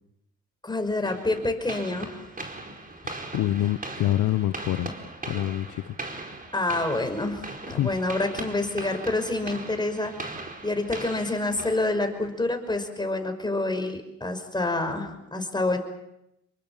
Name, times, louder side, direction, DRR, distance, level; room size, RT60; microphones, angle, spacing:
voice 1, 0.6-2.2 6.5-10.3 10.6-15.8, left 2 dB, 15° left, 6 dB, 5.5 m, -27 dB
sound 1, 1.1-12.3, right 2 dB, 30° right, 4.8 m, -39 dB
voice 2, 3.0-4.9 5.3-5.9 7.7-8.0, left 13 dB, 75° left, 12 dB, 0.9 m, -26 dB
28.0 x 23.0 x 7.4 m, 0.84 s
cardioid pair, 90°, 30 cm